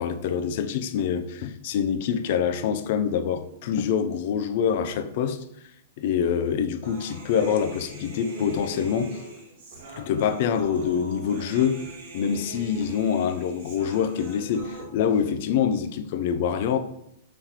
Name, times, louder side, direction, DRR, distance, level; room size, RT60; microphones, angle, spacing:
voice 1, 0.0-5.4 6.0-9.2 10.0-11.8 12.1-16.8, left 7 dB, 55° left, 0.4 m, -25 dB
Human voice, 6.8-14.8, right 1 dB, 60° right, 1.5 m, -42 dB
5.7 x 3.2 x 2.9 m
hypercardioid pair, 125°, 0 cm